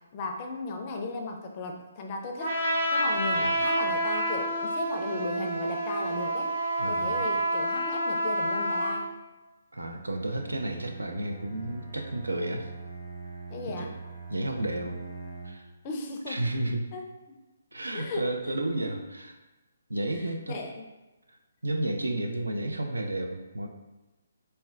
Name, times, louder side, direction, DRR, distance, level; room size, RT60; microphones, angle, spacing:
voice 1, 0.1-2.6 2.9-6.5 6.9-9.1 13.5-13.9 15.8-16.4 16.9-17.1 17.9-19.1 20.1-20.8, left 3 dB, 35° left, 2 dB, 0.4 m, -36 dB
Trumpet, 2.4-9.0, right 1 dB, 40° right, 1.0 m, -28 dB
voice 2, 6.8-7.2 9.7-12.7 13.8-13.9 14.3-15.0 15.4-15.7 16.3-16.9 17.7-19.3 19.9-20.6 21.6-23.7, right 1 dB, 85° right, 4 dB, 0.4 m, -32 dB
Bowed string instrument, 10.1-15.7, right 4 dB, 65° right, 1.1 m, -42 dB
4.2 x 2.2 x 2.3 m, 1.1 s
figure-of-eight pair, 140°, 0 cm